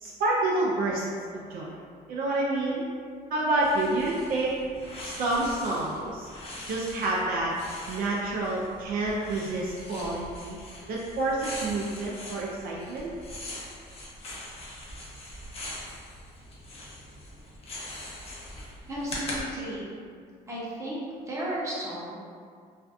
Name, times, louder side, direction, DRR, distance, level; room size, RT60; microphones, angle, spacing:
voice 1, 0.0-1.0 1.3-1.7 2.1-2.8 3.3-4.6 5.0-6.3 6.7-7.5 7.9-10.6 10.9-13.1, right 2 dB, 60° right, -4 dB, 0.4 m, -28 dB
sound 1, 3.6-19.4, left 1 dB, 35° left, 0.6 m, -42 dB
voice 2, 18.5-19.9 20.5-21.0 21.3-22.1, right 1 dB, 15° right, -7 dB, 0.7 m, -34 dB
2.5 x 2.2 x 2.4 m, 2.1 s
cardioid pair, 110°, 17 cm